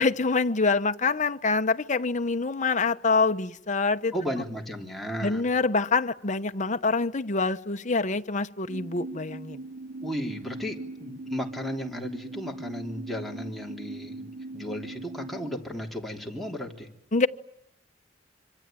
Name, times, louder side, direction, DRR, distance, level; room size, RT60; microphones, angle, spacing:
voice 1, 0.0-4.1 5.2-9.6 17.1-17.3, left 4 dB, 40° left, 1.0 m, -25 dB
voice 2, 4.1-5.4 10.0-16.9, equal, ahead, 3.5 m, -34 dB
sound 1, 8.7-15.6, right 2 dB, 55° right, 2.2 m, -40 dB
26.0 x 25.0 x 9.2 m
head